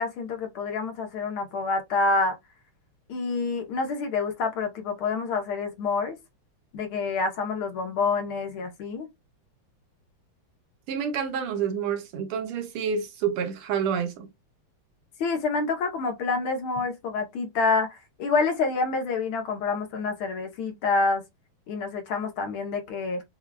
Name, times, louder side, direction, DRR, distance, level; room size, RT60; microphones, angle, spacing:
voice 1, 0.0-2.4 3.1-6.2 6.7-9.1 15.2-21.2 21.7-23.2, left 4 dB, 75° left, 1.8 m, -27 dB
voice 2, 10.9-14.3, right 7 dB, 85° right, 1.8 m, -28 dB
6.9 x 2.4 x 2.2 m
omnidirectional pair, 2.4 m